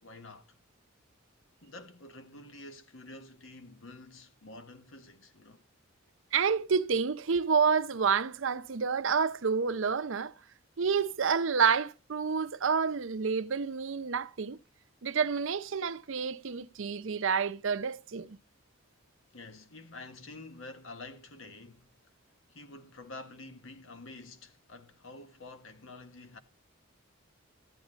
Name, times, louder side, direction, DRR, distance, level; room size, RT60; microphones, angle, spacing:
voice 1, 0.0-0.5 1.6-5.6 19.3-22.1 22.5-26.4, left 2 dB, 75° left, 1.5 m, -48 dB
voice 2, 6.3-10.3 10.8-14.6 15.0-18.4, right 5 dB, 70° right, 0.6 m, -29 dB
14.0 x 9.6 x 3.9 m
head